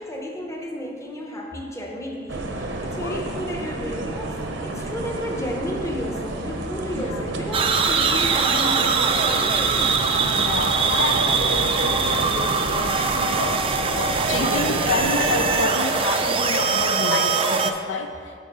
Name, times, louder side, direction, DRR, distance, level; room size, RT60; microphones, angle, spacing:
voice 1, 0.0-9.8 14.5-14.6, left 1 dB, 15° left, 0 dB, 0.9 m, -33 dB
sound 1, 2.3-15.6, right 2 dB, 70° right, 0.7 m, -30 dB
sound 2, 7.5-17.7, right 5 dB, 30° right, 0.4 m, -22 dB
voice 2, 10.3-18.1, left 3 dB, 70° left, 7 dB, 0.4 m, -29 dB
8.1 x 4.5 x 6.0 m, 2.2 s
head